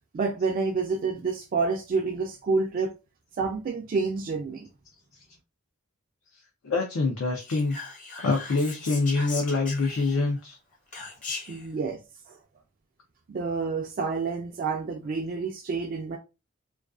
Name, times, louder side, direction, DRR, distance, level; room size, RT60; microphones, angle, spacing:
voice 1, 0.1-2.9 3.4-4.7 11.5-12.0 12.3-12.4 13.3-16.2, right 4 dB, 40° right, 0.3 m, -28 dB
voice 2, 6.6-7.8 8.2-10.6, left 3 dB, 75° left, 0.5 m, -25 dB
Whispering, 7.4-10.4 10.9-11.7, left 3 dB, 40° left, 0.7 m, -38 dB
2.4 x 2.3 x 2.3 m
head